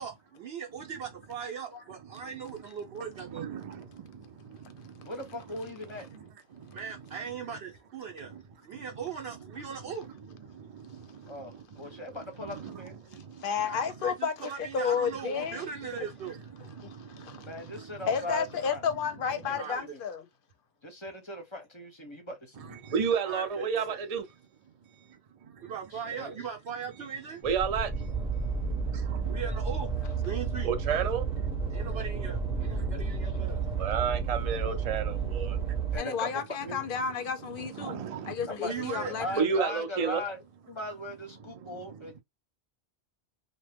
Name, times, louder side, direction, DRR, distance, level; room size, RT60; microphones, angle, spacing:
voice 1, 0.0-3.6 6.7-8.3 8.6-10.1 13.7-16.4 19.6-19.8 23.2-24.0 25.6-27.4 29.3-30.7 31.7-33.6 38.6-39.1, right 7 dB, 70° right, 0.9 m, -39 dB
voice 2, 3.3-5.1 6.1-6.2 6.5-6.8 8.2-8.4 8.7-8.8 10.5-12.0 12.4-13.4 16.6-18.0 22.8-24.2 25.4-25.7 27.4-28.5 28.8-29.4 30.6-31.5 31.8-32.2 32.5-33.0 33.4-35.8 37.6-38.5 38.9-39.0 39.4-40.2 41.6-41.8, right 6 dB, 45° right, 0.5 m, -34 dB
voice 3, 5.0-6.1 11.3-13.0 17.4-18.8 19.3-20.0 20.8-22.8 25.9-26.4 35.9-36.3 36.6-36.8 38.5-40.4 40.7-42.2, left 1 dB, 30° left, 0.7 m, -39 dB
voice 4, 13.4-15.7 16.8-17.5 18.1-20.3 36.0-39.5, left 6 dB, 60° left, 0.7 m, -32 dB
sound 1, 27.4-36.0, right 5 dB, 5° right, 0.7 m, -31 dB
2.8 x 2.2 x 3.4 m
omnidirectional pair, 1.1 m